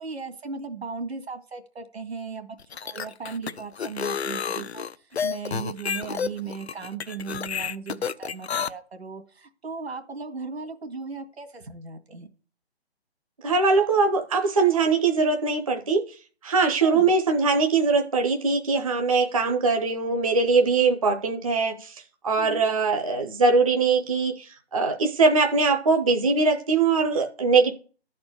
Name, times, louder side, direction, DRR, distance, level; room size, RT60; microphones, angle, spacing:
voice 1, 0.0-2.6 2.8-12.3 16.8-17.2 22.4-22.7, right 5 dB, 80° right, 1.9 m, -37 dB
sound 1, 2.6-8.7, left 6 dB, 75° left, 0.7 m, -30 dB
voice 2, 13.4-16.0 16.4-27.7, right 4 dB, 35° right, 0.7 m, -22 dB
11.5 x 4.4 x 6.8 m
hypercardioid pair, 170°, 32 cm